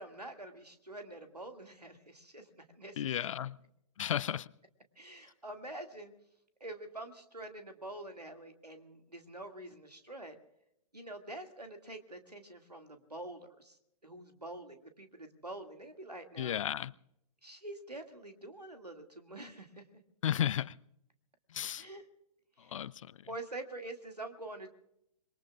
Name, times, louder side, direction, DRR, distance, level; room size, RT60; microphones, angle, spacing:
voice 1, 0.0-3.2 5.0-6.1 6.6-10.4 10.9-16.6 17.4-19.9 21.8-22.1 22.6-22.9 23.3-24.7, right 2 dB, 90° right, 2.1 m, -46 dB
voice 2, 3.0-3.6 4.0-4.5 16.4-16.9 20.2-20.7 21.5-21.8 22.7-22.9, left 10 dB, 55° left, 0.5 m, -33 dB
26.0 x 22.0 x 2.4 m
figure-of-eight pair, 115°, 20 cm